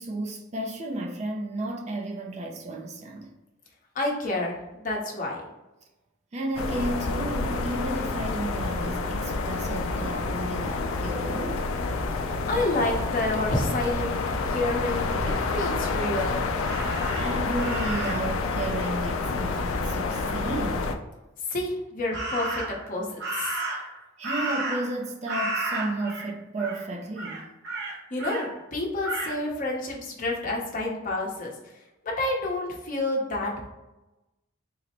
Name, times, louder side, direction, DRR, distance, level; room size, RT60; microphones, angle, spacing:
voice 1, 0.0-3.3 6.3-11.7 15.2-15.4 17.2-21.0 24.2-27.5, right 1 dB, 35° right, 0.4 m, -33 dB
voice 2, 3.9-5.4 12.5-14.2 14.5-16.5 21.5-23.1 23.4-23.5 28.1-31.5 32.0-33.5, left 2 dB, 40° left, 0.8 m, -29 dB
sound 1, 6.6-21.0, left 3 dB, 75° left, 0.4 m, -28 dB
Crow, 16.6-18.4 22.1-22.9 23.2-25.0 25.3-26.3 26.6-26.8 27.2-28.5 29.0-29.4, right 2 dB, 55° right, 0.8 m, -32 dB
3.9 x 2.1 x 4.2 m
head